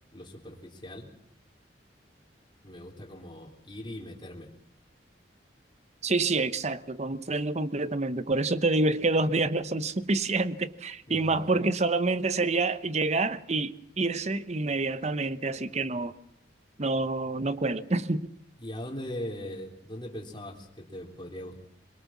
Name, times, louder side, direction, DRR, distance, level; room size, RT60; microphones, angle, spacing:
voice 1, 0.1-1.1 2.6-4.5 11.1-11.5 18.6-21.6, left 1 dB, 25° left, 3.4 m, -40 dB
voice 2, 6.0-16.1 16.8-18.3, right 3 dB, 40° right, 1.0 m, -27 dB
23.0 x 22.0 x 7.3 m
head